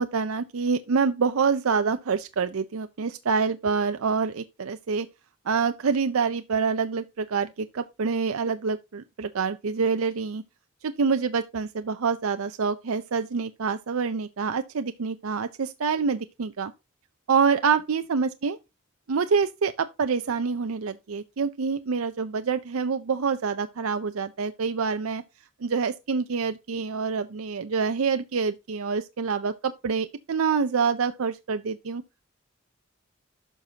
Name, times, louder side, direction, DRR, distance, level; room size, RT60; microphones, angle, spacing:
voice 1, 0.0-5.1 5.5-10.4 10.8-16.7 17.3-18.6 19.1-25.2 25.6-32.0, right 5 dB, 85° right, 0.5 m, -26 dB
11.5 x 5.9 x 2.8 m
head